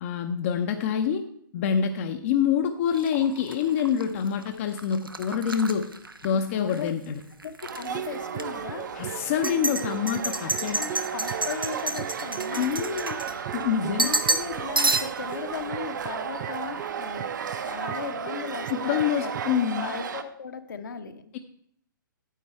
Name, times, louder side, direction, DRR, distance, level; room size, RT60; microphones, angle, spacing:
voice 1, 0.0-1.2 1.5-5.9 6.2-7.2 8.9-10.9 12.5-13.2 13.5-14.1 18.7-19.9, left 8 dB, 40° left, 6 dB, 0.7 m, -26 dB
sound 1, 2.9-6.9 7.2-7.9 8.3-8.4 9.2-13.6 14.0-14.5 14.8-15.3, right 2 dB, 90° right, 0.8 m, -30 dB
voice 2, 6.5-6.9 7.4-8.9 10.4-12.7 14.0-17.3 17.6-19.5 19.7-21.4, left 6 dB, 60° left, 8 dB, 1.0 m, -37 dB
sound 2, 7.6-20.2, right 6 dB, 60° right, 1.0 m, -35 dB
sound 3, 7.9-19.7, right 12 dB, 35° right, 0.4 m, -38 dB
9.3 x 8.1 x 4.4 m, 0.67 s
figure-of-eight pair, 120°, 11 cm